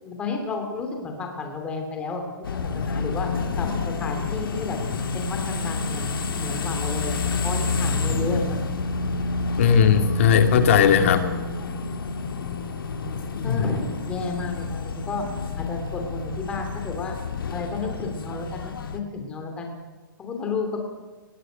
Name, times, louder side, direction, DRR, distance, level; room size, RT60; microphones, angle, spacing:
voice 1, 0.0-2.2 2.5-3.3 3.6-4.8 5.1-8.6 13.4-15.2 15.5-17.1 17.5-19.7 20.2-20.8, left 3 dB, 10° left, 3 dB, 2.8 m, -32 dB
sound 1, 2.4-19.0, left 4 dB, 80° left, 2.8 m, -29 dB
voice 2, 9.6-11.2 13.4-13.6, left 7 dB, 35° left, 7 dB, 2.2 m, -18 dB
19.5 x 17.5 x 9.1 m, 1.3 s
hypercardioid pair, 175°, 12 cm